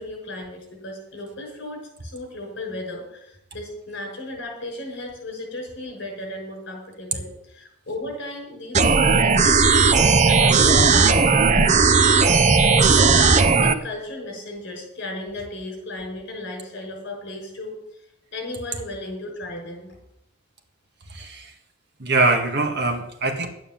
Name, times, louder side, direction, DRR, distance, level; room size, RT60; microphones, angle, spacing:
voice 1, 0.0-12.1 12.6-17.8 18.3-19.9, left 1 dB, 55° left, 1 dB, 6.2 m, -35 dB
sound 1, 8.7-13.7, right 4 dB, 35° right, 0.7 m, -16 dB
voice 2, 21.1-21.5 22.0-23.5, right 3 dB, 55° right, 4 dB, 1.7 m, -23 dB
11.5 x 9.3 x 7.2 m, 0.81 s
head